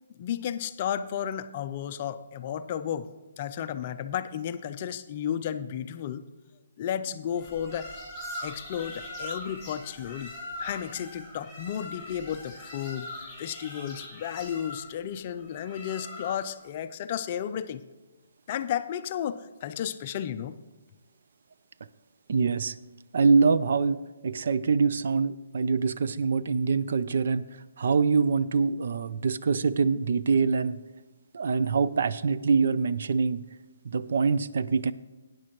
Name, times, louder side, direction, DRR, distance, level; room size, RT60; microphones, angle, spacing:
voice 1, 0.2-3.1 3.4-6.2 6.8-7.9 8.4-10.3 10.6-17.8 18.5-20.6, left 9 dB, 30° left, 11 dB, 0.4 m, -33 dB
sound 1, 7.3-16.6, left 1 dB, 5° right, 3.6 m, -41 dB
voice 2, 22.3-22.7 23.1-27.4 27.8-30.8 31.3-33.4 33.8-34.9, right 5 dB, 60° right, 15 dB, 0.4 m, -24 dB
13.5 x 9.2 x 3.0 m, 1.2 s
hypercardioid pair, 165°, 0 cm